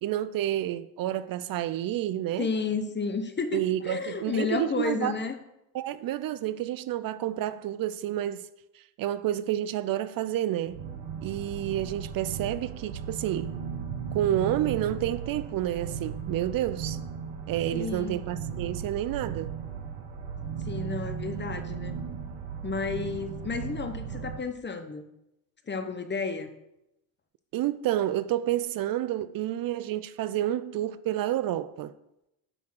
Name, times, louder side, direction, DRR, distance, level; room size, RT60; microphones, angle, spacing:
voice 1, 0.0-2.5 3.5-5.2 5.7-8.5 9.0-10.8 11.2-13.5 14.1-17.0 17.5-19.5 27.5-31.9, right 12 dB, 60° right, 0.5 m, -29 dB
voice 2, 2.4-5.4 17.7-18.2 20.6-22.0 22.6-25.1 25.7-26.6, left 4 dB, 30° left, 0.9 m, -32 dB
sound 1, 10.7-24.4, right 7 dB, 80° right, 1.4 m, -36 dB
9.1 x 3.6 x 6.1 m
supercardioid pair, 80°, 39 cm